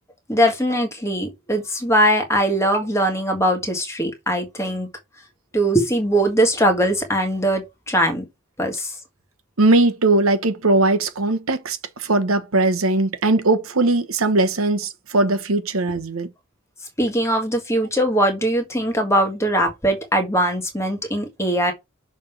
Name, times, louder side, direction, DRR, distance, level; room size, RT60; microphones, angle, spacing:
voice 1, 0.3-4.9 5.5-8.3 8.6-8.9 17.0-21.7, right 1 dB, 15° left, 1.6 m, -21 dB
voice 2, 9.6-16.3, right 2 dB, 90° right, 1.1 m, -19 dB
6.4 x 3.6 x 5.8 m
head